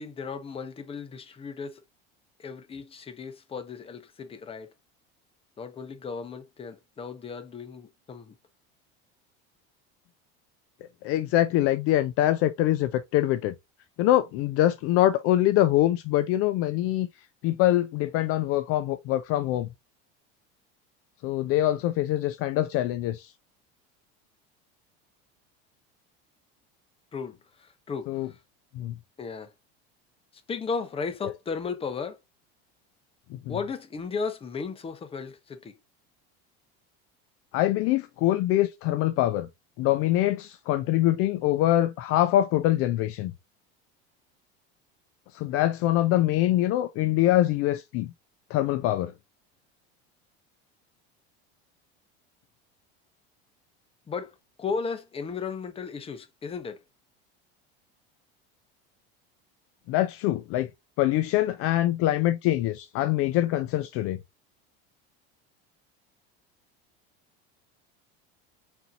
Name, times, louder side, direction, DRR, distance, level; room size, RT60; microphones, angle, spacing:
voice 1, 0.0-1.8 2.4-4.7 5.6-8.3 27.1-28.3 29.2-29.5 30.5-32.2 33.5-35.7 54.1-56.8, left 5 dB, 20° left, 0.7 m, -35 dB
voice 2, 11.0-13.5 14.0-17.1 17.4-19.7 21.2-23.3 28.1-28.3 28.8-28.9 33.5-33.6 37.5-39.5 39.8-43.3 45.3-48.1 48.5-49.1 59.9-60.7 61.0-64.2, left 14 dB, 50° left, 0.4 m, -24 dB
4.4 x 4.0 x 2.4 m
supercardioid pair, 130°, 30 cm